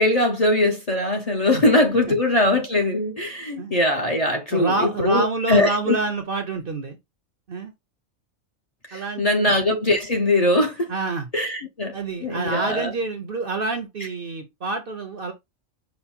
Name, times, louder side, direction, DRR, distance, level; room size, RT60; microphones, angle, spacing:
voice 1, 0.0-6.0 8.9-10.9 11.3-12.9, left 1 dB, 35° left, 0.8 m, -21 dB
voice 2, 4.5-7.0 7.5-7.7 8.9-9.5 10.9-11.3 11.9-15.3, right 3 dB, 50° right, 0.8 m, -27 dB
5.5 x 2.1 x 4.2 m
omnidirectional pair, 1.4 m